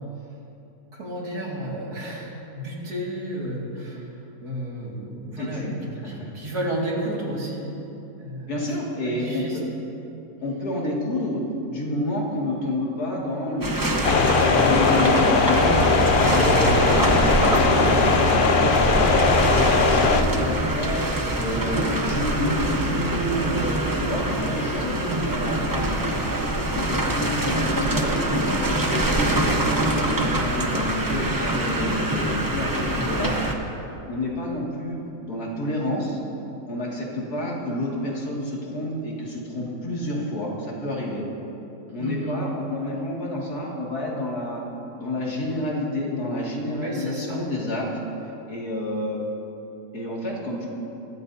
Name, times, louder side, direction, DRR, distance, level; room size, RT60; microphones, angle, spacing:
voice 1, 0.9-4.1 4.4-5.7 6.0-7.7 8.2-8.6 9.0-9.8 24.9-25.2 42.0-42.4 46.8-47.4, right 1 dB, 85° right, -4 dB, 2.8 m, -32 dB
voice 2, 5.4-5.7 6.0-6.3 8.5-9.6 10.4-14.3 14.6-15.9 16.2-17.1 17.4-25.0 25.3-26.0 26.7-33.4 34.1-36.2 36.7-41.2 41.9-44.6 45.0-47.9 48.5-49.2 49.9-50.7, left 1 dB, 75° left, -4 dB, 2.8 m, -29 dB
sound 1, 13.6-33.5, right 1 dB, 20° right, 0.7 m, -24 dB
sound 2, 14.0-20.2, left 4 dB, 55° left, 0.6 m, -20 dB
21.0 x 13.5 x 2.8 m, 2.9 s
omnidirectional pair, 1.7 m